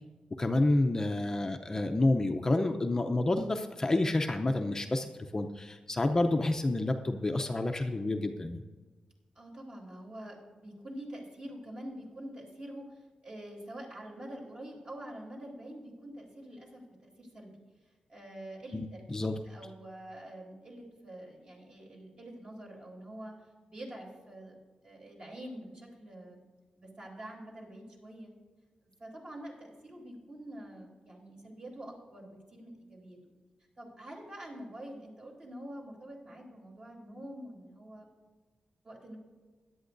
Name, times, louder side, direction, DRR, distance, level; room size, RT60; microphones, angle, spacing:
voice 1, 0.4-8.6 18.7-19.3, left 2 dB, 25° left, 5 dB, 0.6 m, -29 dB
voice 2, 9.3-17.6 18.1-23.3 23.7-24.6 24.8-26.4 26.7-28.3 29.0-33.2 33.8-38.1 38.8-39.2, right 1 dB, 40° right, -1 dB, 3.3 m, -46 dB
16.5 x 11.0 x 2.6 m, 1.4 s
wide cardioid pair, 125°, 2 cm